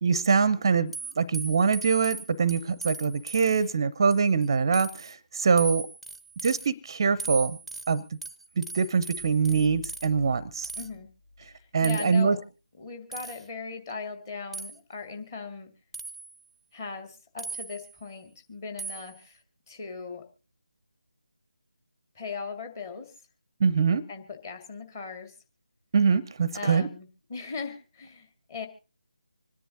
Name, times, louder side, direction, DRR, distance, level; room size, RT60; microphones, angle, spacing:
voice 1, 0.0-5.9 6.4-7.6 7.9-8.0 8.6-10.7 11.7-12.4 23.6-24.0 25.9-26.9, right 5 dB, 30° right, 18 dB, 0.5 m, -24 dB
sound 1, 0.9-3.7 4.1-4.5 4.7-5.1 5.6-6.7 7.2-10.1 10.6-10.9 11.8-12.2 13.1-13.5 14.5-14.8 15.9-16.4 17.4-18.0 18.8-19.2, right 4 dB, ahead, 0.7 m, -39 dB
sound 2, 9.2-12.1, left 1 dB, 70° left, 2.5 m, -47 dB
voice 2, 10.8-11.1 11.4-12.4 12.8-15.7 16.7-20.3 22.1-23.1 24.1-25.3 26.5-28.7, left 5 dB, 25° left, 5 dB, 2.1 m, -39 dB
26.0 x 10.0 x 2.7 m, 0.34 s
figure-of-eight pair, 155°, 4 cm